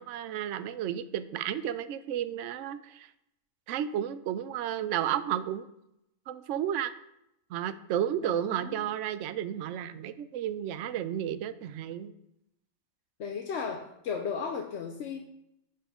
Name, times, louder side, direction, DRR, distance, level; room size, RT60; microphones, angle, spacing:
voice 1, 0.0-3.1 3.7-5.7 6.3-6.9 7.5-12.1, right 10 dB, 70° right, 13 dB, 0.9 m, -32 dB
voice 2, 8.2-8.9 13.2-15.2, left 6 dB, 60° left, 3 dB, 0.9 m, -35 dB
10.5 x 5.6 x 3.7 m, 0.81 s
omnidirectional pair, 1.4 m